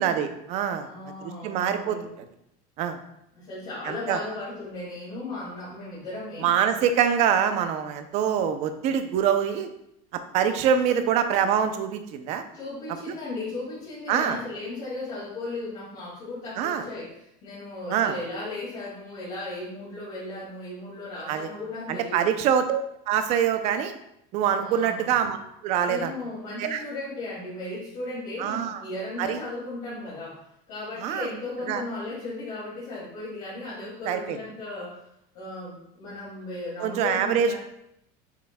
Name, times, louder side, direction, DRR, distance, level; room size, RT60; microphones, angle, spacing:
voice 1, 0.0-0.9 1.2-2.2 2.8-3.0 3.9-4.2 6.4-9.7 10.1-12.4 13.1-13.2 14.1-14.4 16.6-16.8 17.9-18.1 21.3-21.5 21.9-23.9 24.3-25.4 25.6-26.1 26.6-26.8 28.4-28.8 29.2-29.4 31.0-31.3 31.7-31.8 34.0-34.4 36.8-37.5, right 8 dB, 35° right, 9 dB, 0.5 m, -25 dB
voice 2, 0.8-2.1 3.3-6.5 12.5-22.3 24.6-25.1 25.8-30.4 30.7-35.0 35.3-37.6, left 2 dB, 40° left, -10 dB, 2.5 m, -36 dB
8.3 x 6.0 x 2.3 m, 0.79 s
cardioid pair, 175°, 19 cm